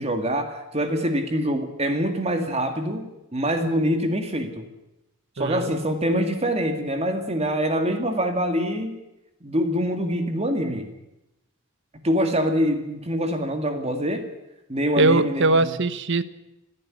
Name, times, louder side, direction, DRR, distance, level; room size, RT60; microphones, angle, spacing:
voice 1, 0.0-4.7 5.4-9.0 9.4-10.9 12.0-14.3 14.7-15.7, equal, 30° right, 6 dB, 2.1 m, -25 dB
voice 2, 5.4-5.7 15.0-16.2, right 2 dB, 55° right, 14 dB, 1.0 m, -21 dB
28.5 x 10.5 x 9.8 m, 0.94 s
head